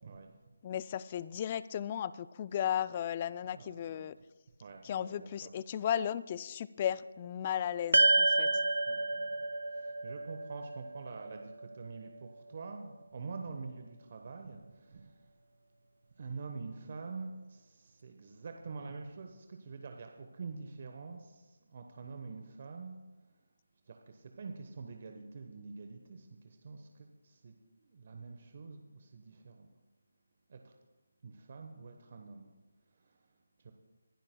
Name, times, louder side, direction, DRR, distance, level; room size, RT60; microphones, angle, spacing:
voice 1, 0.0-0.5 3.4-4.1 4.6-5.5 8.4-15.4 16.1-23.0 23.2-23.4 23.8-29.7 30.5-30.7 31.2-33.7, right 4 dB, 45° right, 4 dB, 1.0 m, -47 dB
voice 2, 0.6-4.2 4.8-8.5, left 9 dB, 25° left, 17 dB, 0.3 m, -35 dB
sound 1, 7.9-12.4, right 2 dB, 85° right, 0.5 m, -30 dB
23.5 x 12.0 x 2.2 m, 1.2 s
figure-of-eight pair, 165°, 0 cm